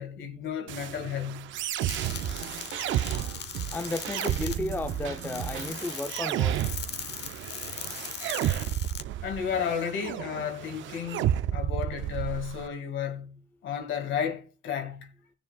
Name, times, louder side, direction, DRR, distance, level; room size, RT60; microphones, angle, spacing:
voice 1, 0.0-1.5 9.2-15.1, left 8 dB, 75° left, 1.9 m, -33 dB
sound 1, 0.7-12.7, right 12 dB, 75° right, 0.4 m, -32 dB
sound 2, 1.8-9.0, left 8 dB, 60° left, 1.0 m, -40 dB
sound 3, 2.0-5.8, right 8 dB, 90° right, 1.0 m, -38 dB
voice 2, 3.7-6.6, left 2 dB, 10° left, 0.5 m, -33 dB
16.0 x 7.1 x 2.3 m
cardioid pair, 90°, 20 cm